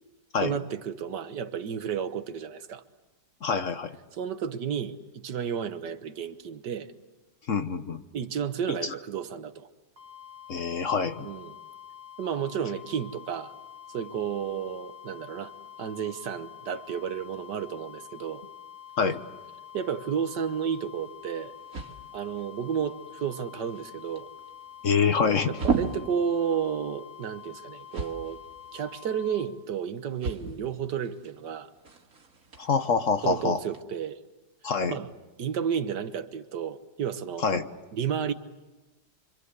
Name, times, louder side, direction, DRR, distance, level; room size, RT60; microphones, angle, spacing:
voice 1, 0.4-2.8 4.1-6.9 8.1-9.7 11.2-11.5 12.2-13.5 13.9-15.5 15.8-18.4 19.7-21.6 22.1-24.3 25.5-28.4 28.7-31.7 33.2-34.2 34.9-35.1 35.4-37.5 37.9-38.3, right 7 dB, 75° right, 1.8 m, -32 dB
voice 2, 3.4-3.9 7.5-8.0 8.8-8.9 10.5-11.3 19.0-19.2 24.8-25.5 32.6-33.6 34.6-34.9 37.4-37.7, left 5 dB, 50° left, 1.4 m, -26 dB
sound 1, 10.0-29.5, left 10 dB, 35° right, 2.4 m, -47 dB
sound 2, 20.4-33.8, right 5 dB, 50° right, 2.4 m, -38 dB
26.5 x 25.5 x 8.2 m
omnidirectional pair, 1.8 m